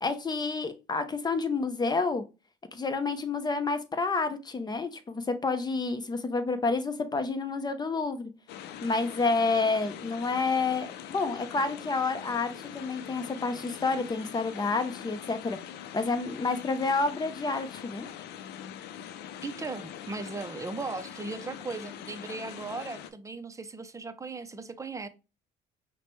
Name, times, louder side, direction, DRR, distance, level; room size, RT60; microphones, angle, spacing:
voice 1, 0.0-2.2 2.7-8.3 8.8-15.6 15.9-18.1, left 3 dB, 25° left, 0.7 m, -29 dB
sound 1, 8.5-23.1, left 10 dB, 80° left, 0.5 m, -43 dB
voice 2, 19.4-25.1, right 3 dB, 20° right, 0.6 m, -37 dB
5.7 x 2.2 x 3.1 m
cardioid pair, 90°, 17 cm